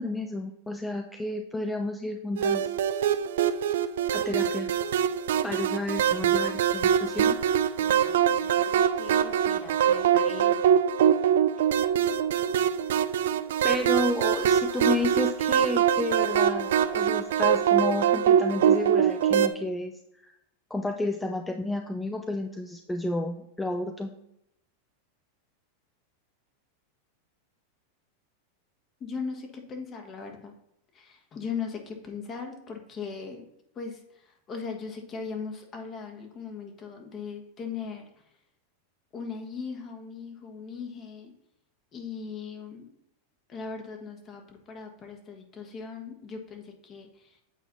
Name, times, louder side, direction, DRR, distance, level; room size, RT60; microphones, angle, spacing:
voice 1, 0.0-2.6 4.1-4.7 5.4-7.4 13.6-20.3 20.7-24.1, left 2 dB, 10° left, 5 dB, 0.5 m, -31 dB
sound 1, 2.4-19.5, right 9 dB, 75° right, 0.4 m, -24 dB
voice 2, 7.8-10.8 29.0-30.5 30.9-33.4 33.7-38.2 39.1-41.3 41.9-42.9 43.5-47.4, left 5 dB, 35° left, 4 dB, 1.5 m, -39 dB
8.3 x 4.2 x 4.0 m, 0.80 s
hypercardioid pair, 105°, 0 cm